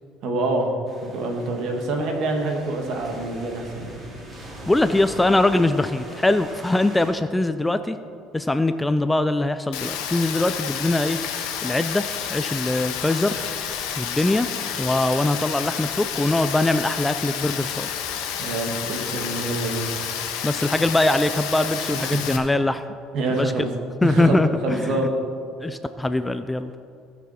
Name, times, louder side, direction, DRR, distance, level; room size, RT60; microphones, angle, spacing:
voice 1, 0.2-0.7 1.0-3.9 18.3-19.9 21.9-22.2 23.1-23.7 24.0-24.4 24.6-25.1, right 2 dB, 65° right, 2 dB, 1.9 m, -26 dB
sound 1, 0.9-7.1, right 1 dB, 30° right, 2.7 m, -41 dB
voice 2, 4.7-8.0 8.3-11.2 11.6-12.0 12.3-13.4 14.0-14.5 14.8-17.9 20.4-22.8 23.3-23.5 24.0-25.1 25.6-26.7, left 2 dB, 10° left, 11 dB, 0.4 m, -22 dB
Rain, 9.7-22.4, left 8 dB, 85° left, 1.3 m, -30 dB
18.0 x 6.2 x 4.3 m, 2.4 s
cardioid pair, 120°, 0 cm